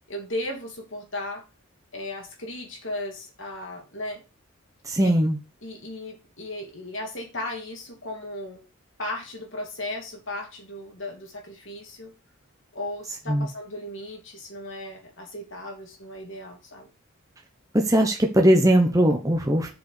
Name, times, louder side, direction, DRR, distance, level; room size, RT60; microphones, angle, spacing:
voice 1, 0.1-1.5 1.9-4.2 5.0-5.1 5.6-8.6 9.0-12.1 12.7-16.9, left 1 dB, 60° left, 1 dB, 3.2 m, -36 dB
voice 2, 4.8-5.4 13.3-13.5 17.7-19.7, right 1 dB, 15° right, 2 dB, 1.0 m, -20 dB
6.8 x 5.2 x 6.7 m, 0.30 s
head